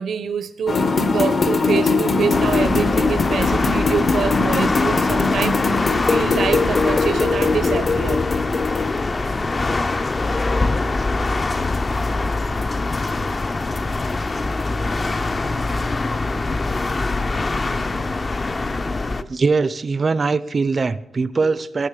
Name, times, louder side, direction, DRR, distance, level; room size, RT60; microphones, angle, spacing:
voice 1, 0.0-8.2, right 6 dB, 85° right, 0.7 m, -25 dB
sound 1, 0.7-9.0, left 4 dB, 45° left, 0.8 m, -21 dB
sound 2, 2.3-19.2, left 3 dB, 30° left, 0.4 m, -23 dB
voice 2, 19.3-21.9, right 4 dB, 35° right, 0.4 m, -21 dB
18.5 x 6.3 x 5.0 m
wide cardioid pair, 170°, 0 cm